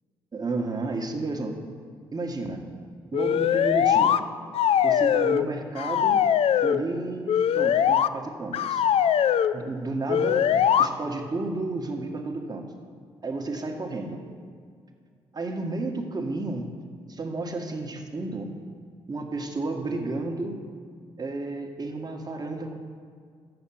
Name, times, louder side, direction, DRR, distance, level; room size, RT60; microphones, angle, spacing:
voice 1, 0.3-1.5 2.1-2.6 3.1-4.2 4.8-6.2 6.6-8.8 9.5-12.6 13.2-14.2 15.3-16.7 17.1-18.5 19.1-20.6 21.2-22.8, right 2 dB, 35° right, 3 dB, 1.4 m, -32 dB
sound 1, 3.1-4.2 4.5-5.5 5.8-6.8 7.3-8.1 8.5-9.5 10.1-10.9, left 9 dB, 55° left, 0.4 m, -21 dB
8.0 x 6.4 x 7.2 m, 2.1 s
hypercardioid pair, 45°, 12 cm